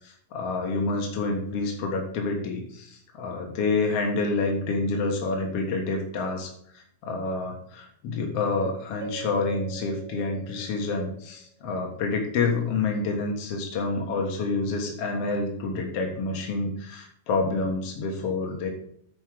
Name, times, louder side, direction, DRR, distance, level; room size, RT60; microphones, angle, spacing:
voice 1, 0.0-6.5 6.7-18.7, left 3 dB, 75° left, 2 dB, 1.3 m, -28 dB
Keyboard (musical), 9.0-11.5, right 8 dB, 75° right, 3.0 m, -42 dB
10.5 x 4.8 x 6.3 m, 0.64 s
omnidirectional pair, 5.1 m